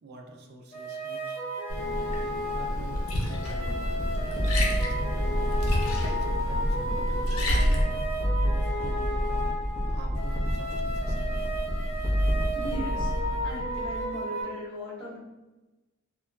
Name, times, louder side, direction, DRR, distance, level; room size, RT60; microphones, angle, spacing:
voice 1, 0.0-1.4 2.5-8.0 8.4-9.5 9.9-11.3, right 3 dB, 50° right, 2 dB, 0.4 m, -46 dB
sound 1, 0.7-14.4, equal, 30° left, 0.7 m, -34 dB
Liquid, 1.7-7.8, left 1 dB, 80° left, 0.5 m, -29 dB
sound 2, 3.6-14.1, equal, 10° right, 0.7 m, -29 dB
voice 2, 12.5-15.2, equal, 5° left, -13 dB, 1.4 m, -38 dB
2.9 x 2.2 x 2.3 m, 1.1 s
head